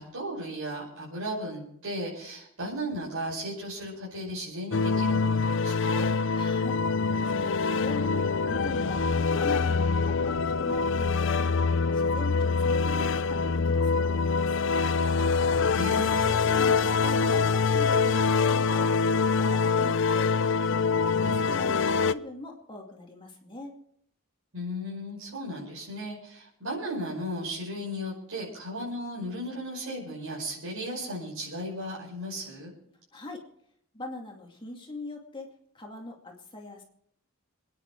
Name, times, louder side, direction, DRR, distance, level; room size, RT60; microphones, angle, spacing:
voice 1, 0.0-6.1 15.7-16.3 24.5-32.7, equal, 70° right, -7 dB, 5.8 m, -35 dB
sound 1, 4.7-22.1, left 5 dB, 55° left, 0.5 m, -25 dB
voice 2, 6.3-6.8 7.2-9.0 9.3-11.6 11.9-14.9 16.3-23.8 33.1-33.4 33.9-35.5 35.7-36.8, left 2 dB, 20° left, 0 dB, 2.4 m, -42 dB
26.5 x 9.9 x 4.6 m, 0.69 s
head